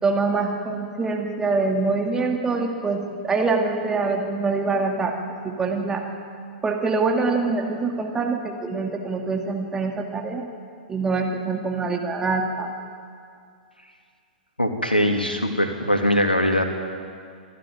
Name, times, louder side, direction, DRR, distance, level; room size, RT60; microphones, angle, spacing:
voice 1, 0.0-3.0 3.2-5.1 5.4-6.0 6.6-10.5 10.9-12.7, right 3 dB, 15° right, 1 dB, 2.2 m, -24 dB
voice 2, 14.6-16.6, equal, 85° left, 4 dB, 2.6 m, -21 dB
27.0 x 12.5 x 9.4 m, 2.3 s
figure-of-eight pair, 105°, 5 cm